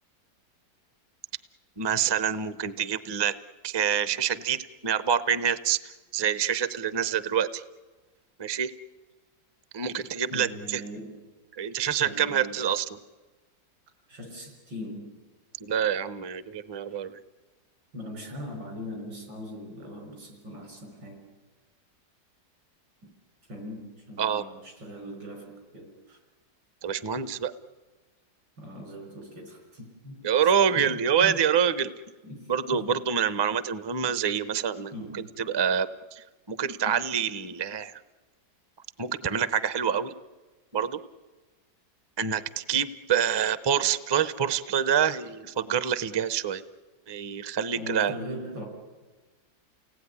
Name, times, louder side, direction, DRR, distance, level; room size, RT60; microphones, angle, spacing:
voice 1, 1.8-3.4 3.6-7.6 8.4-8.7 9.7-10.8 11.6-13.0 15.6-17.2 24.2-24.4 26.8-27.5 30.2-31.9 32.5-37.9 39.0-40.1 40.7-41.0 42.2-46.6 47.1-48.2, right 8 dB, 40° right, 14 dB, 0.3 m, -26 dB
voice 2, 10.3-11.2 12.0-12.6 14.1-15.2 16.9-17.0 17.9-21.3 23.0-23.1 23.5-26.2 28.6-31.4 32.2-32.9 34.9-35.4 47.7-48.7, equal, 85° right, 3 dB, 6.8 m, -40 dB
29.5 x 18.5 x 9.8 m, 1.3 s
omnidirectional pair, 2.0 m